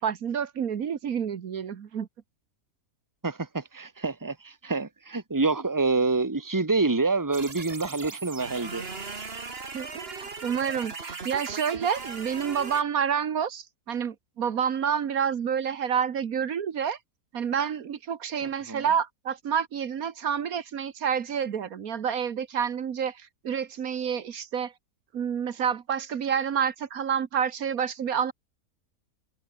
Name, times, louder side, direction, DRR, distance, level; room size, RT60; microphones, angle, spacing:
voice 1, 0.0-2.1 9.7-17.0 17.3-24.7 25.1-28.3, right 7 dB, 75° right, 1.7 m, -29 dB
voice 2, 3.2-8.8 18.4-18.9, right 3 dB, 15° right, 1.6 m, -27 dB
sound 1, 7.3-12.8, right 4 dB, 40° right, 2.2 m, -38 dB
omnidirectional pair, 1.5 m